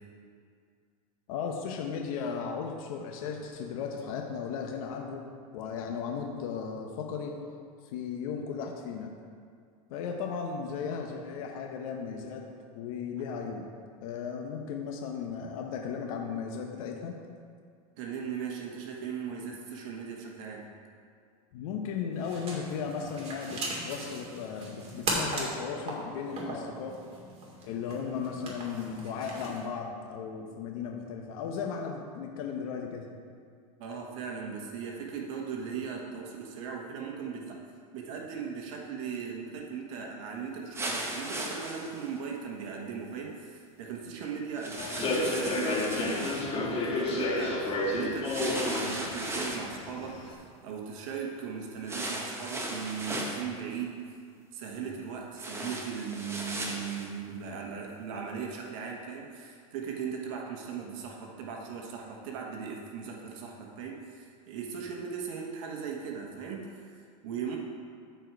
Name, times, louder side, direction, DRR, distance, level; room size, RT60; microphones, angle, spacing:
voice 1, 1.3-5.3 5.5-7.4 7.8-9.1 9.9-12.5 12.7-13.6 14.0-17.2 21.5-27.0 27.6-33.1, left 6 dB, 70° left, 1 dB, 1.0 m, -36 dB
voice 2, 18.0-20.7 33.8-37.6 37.9-54.2 54.5-67.6, right 6 dB, 65° right, 0 dB, 1.3 m, -38 dB
sound 1, 22.1-29.7, right 2 dB, 35° right, 2.6 m, -38 dB
sound 2, 40.7-42.1 44.5-46.5 48.2-49.7 51.9-53.4 55.4-57.1, right 1 dB, 15° right, 1.2 m, -36 dB
Human voice / Subway metro underground, 44.8-50.3, left 2 dB, 30° left, 1.7 m, -31 dB
13.0 x 4.6 x 4.7 m, 2.2 s
supercardioid pair, 120°, 18 cm